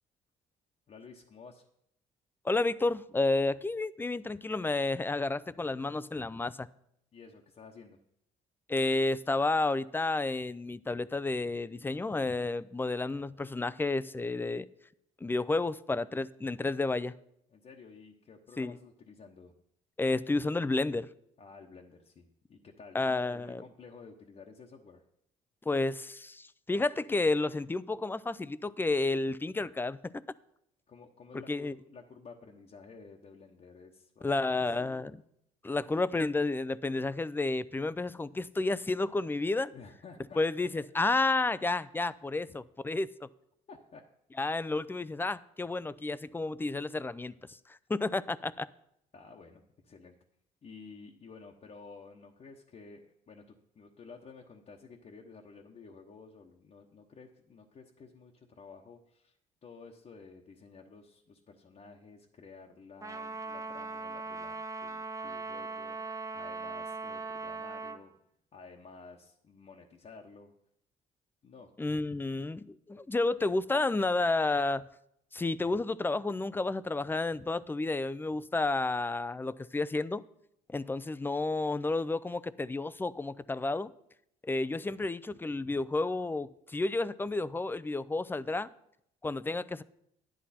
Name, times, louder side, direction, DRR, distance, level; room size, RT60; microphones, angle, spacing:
voice 1, 0.9-1.7 7.1-8.0 17.5-19.5 21.4-25.0 30.9-35.2 39.7-40.4 42.4-42.6 43.7-44.0 49.1-50.2 50.6-53.4 53.7-68.1 68.5-70.5 71.4-71.7, left 4 dB, 45° left, 1.1 m, -52 dB
voice 2, 2.4-6.7 8.7-14.7 15.2-17.1 18.6-18.8 20.0-21.1 22.9-23.6 25.7-30.0 31.5-31.8 34.2-35.2 35.6-39.7 40.4-43.3 44.4-48.7 71.8-74.9 75.3-80.2 80.7-83.9 84.4-88.7 89.2-89.8, left 2 dB, 15° left, 0.5 m, -31 dB
Trumpet, 63.0-68.0, right 3 dB, 20° right, 0.8 m, -39 dB
11.0 x 10.5 x 4.3 m
cardioid pair, 85°, 16 cm